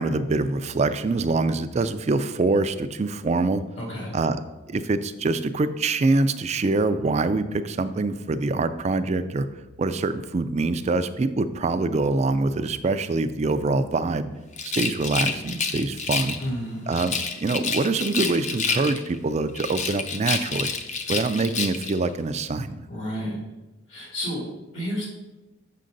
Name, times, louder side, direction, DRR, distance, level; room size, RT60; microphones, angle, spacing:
voice 1, 0.0-3.6 4.1-4.4 4.7-9.5 9.8-14.3 14.6-16.4 16.9-20.7 21.1-22.8, right 3 dB, 35° right, 11 dB, 0.4 m, -24 dB
voice 2, 3.8-4.1 16.4-16.9 22.9-23.4 23.9-25.1, equal, 70° left, -3 dB, 2.2 m, -31 dB
Rattle, 14.5-16.5 16.9-19.2 19.5-22.0, left 4 dB, 35° left, 0.5 m, -28 dB
7.5 x 6.1 x 3.9 m, 1.1 s
head